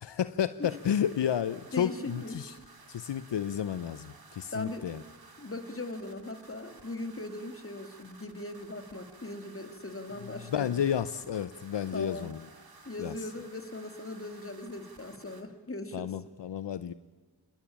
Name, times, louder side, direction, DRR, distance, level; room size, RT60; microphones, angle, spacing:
voice 1, 0.0-2.5 2.9-5.0 10.2-12.4 13.0-13.3 15.9-16.9, left 9 dB, 70° left, 15 dB, 0.8 m, -31 dB
sound 1, 0.6-15.4, right 3 dB, 55° right, 3.1 m, -55 dB
voice 2, 1.7-2.4 4.5-4.9 5.4-10.7 11.9-12.3 12.8-16.1, left 2 dB, 30° left, 8 dB, 2.8 m, -39 dB
26.5 x 20.5 x 8.8 m, 1.4 s
cardioid pair, 60°, 44 cm